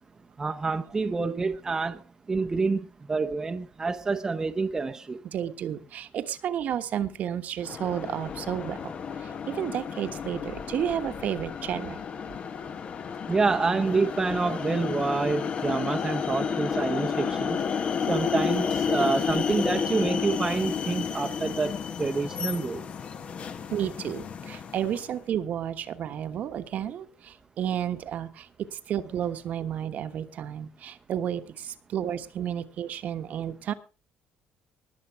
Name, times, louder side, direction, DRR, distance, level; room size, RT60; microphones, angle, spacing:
voice 1, 0.4-2.0 2.3-5.2 13.3-17.6 18.1-22.8, right 4 dB, 15° right, 0.8 m, -27 dB
voice 2, 5.2-8.9 9.2-12.0 23.7-33.7, right 9 dB, 55° right, 1.2 m, -32 dB
sound 1, 7.6-25.1, left 6 dB, 40° left, 0.9 m, -31 dB
20.5 x 7.4 x 4.7 m
cardioid pair, 145°, 3 cm